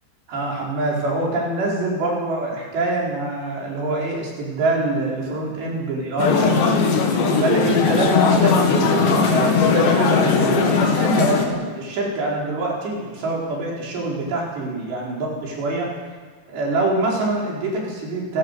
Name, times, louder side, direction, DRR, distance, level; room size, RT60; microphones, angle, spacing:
voice 1, 0.3-6.8 7.3-15.9 16.5-18.4, right 2 dB, 65° right, -3 dB, 6.4 m, -25 dB
sound 1, 6.2-11.5, left 5 dB, 70° left, 4.2 m, -18 dB
27.5 x 15.5 x 6.7 m, 1.4 s
omnidirectional pair, 5.4 m